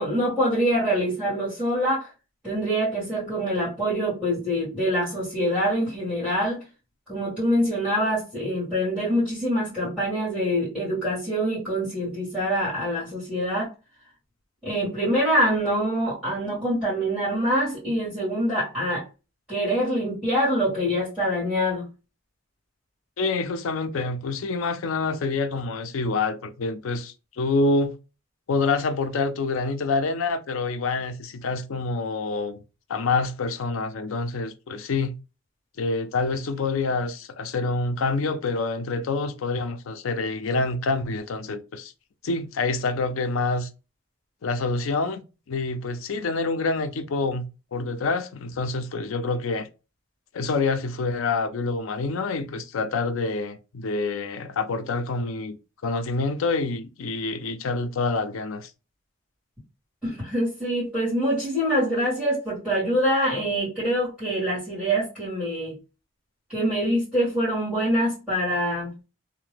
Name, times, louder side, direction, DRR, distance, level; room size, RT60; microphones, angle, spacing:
voice 1, 0.0-2.1 2.4-6.6 7.1-13.7 14.6-19.0 19.5-21.8 60.0-65.8 66.5-68.9, equal, 5° right, 1.5 m, -25 dB
voice 2, 23.2-27.9 28.5-32.6 32.9-35.2 35.8-41.9 42.2-43.7 44.4-45.2 45.5-49.7 50.3-55.6 55.8-58.7, left 3 dB, 80° left, 0.4 m, -27 dB
2.7 x 2.1 x 3.3 m
head